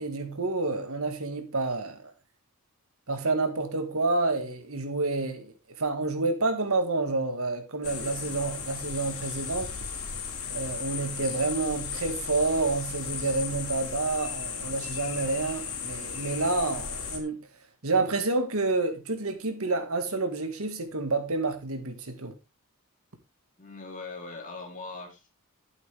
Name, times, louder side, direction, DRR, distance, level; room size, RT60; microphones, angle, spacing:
voice 1, 0.0-2.1 3.1-9.7 10.5-17.4 17.8-22.3, right 3 dB, 70° right, 2.0 m, -29 dB
sound 1, 7.8-17.2, left 6 dB, 65° left, 3.1 m, -36 dB
voice 2, 23.6-25.3, left 3 dB, 35° left, 3.6 m, -40 dB
12.5 x 8.0 x 3.5 m
head